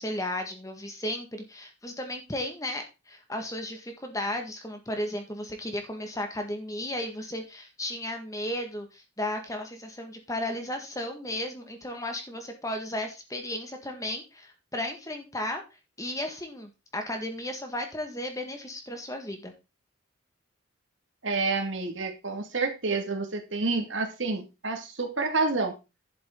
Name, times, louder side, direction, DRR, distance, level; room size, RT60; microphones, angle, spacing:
voice 1, 0.0-15.6 16.0-19.5, left 1 dB, 15° left, 5 dB, 1.8 m, -34 dB
voice 2, 21.2-25.7, right 3 dB, 65° right, 5 dB, 2.4 m, -29 dB
11.5 x 7.7 x 3.9 m, 0.27 s
head